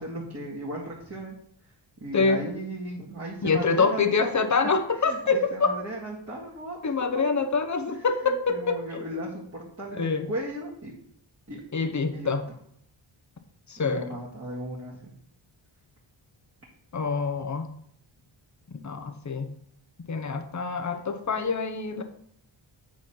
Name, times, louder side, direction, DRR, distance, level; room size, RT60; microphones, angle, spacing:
voice 1, 0.0-1.4 2.0-4.3 4.6-7.4 7.9-10.9 11.5-11.6 12.1-12.3 13.8-15.1, right 1 dB, 30° right, -6 dB, 2.0 m, -36 dB
voice 2, 3.4-5.7 6.8-9.0 10.0-10.3 11.7-12.4 13.7-14.1 16.9-17.6 18.7-19.5 20.1-22.0, left 4 dB, 35° left, 8 dB, 0.9 m, -26 dB
9.4 x 4.1 x 5.7 m, 0.68 s
wide cardioid pair, 100°, 49 cm